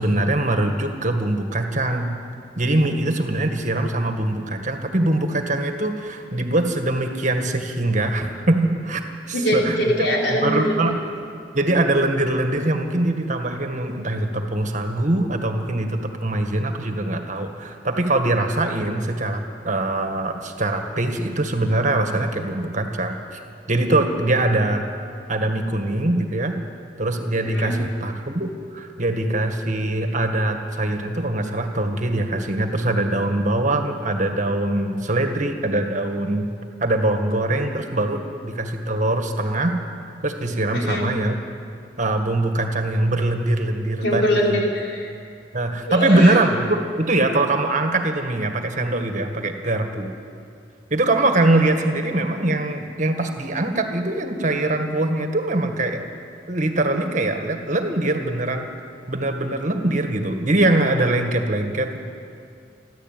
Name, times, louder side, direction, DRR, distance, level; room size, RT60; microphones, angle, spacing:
voice 1, 0.0-2.2 2.6-9.0 9.3-9.8 10.3-11.0 11.5-23.4 23.7-24.9 25.3-26.6 27.0-36.5 36.8-39.8 40.2-41.4 42.0-44.6 45.5-50.1 50.9-56.1 56.5-58.7 59.1-62.0, right 2 dB, 45° right, 5 dB, 1.8 m, -22 dB
voice 2, 9.3-10.8 27.5-27.8 40.7-41.1 44.0-45.1 45.8-46.3, equal, 75° left, -2 dB, 4.9 m, -22 dB
28.5 x 11.5 x 9.2 m, 2.4 s
head